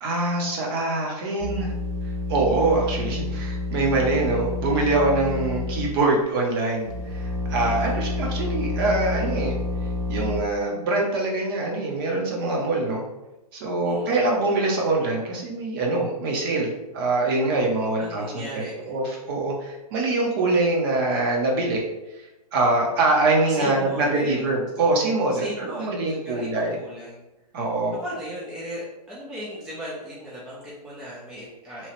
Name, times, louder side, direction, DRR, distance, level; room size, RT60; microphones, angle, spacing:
voice 1, 0.0-1.7 2.3-9.6 10.1-13.0 13.5-21.8 22.5-26.8 27.5-28.0, right 2 dB, 35° right, -1 dB, 0.7 m, -24 dB
sound 1, 1.4-6.2 6.8-10.4, left 2 dB, 55° right, 1.2 m, -29 dB
voice 2, 7.5-8.0 13.8-14.2 18.0-18.9 23.5-24.4 25.3-27.2 28.0-31.9, equal, 5° right, -8 dB, 0.4 m, -37 dB
2.9 x 2.3 x 3.0 m, 1.0 s
hypercardioid pair, 130°, 21 cm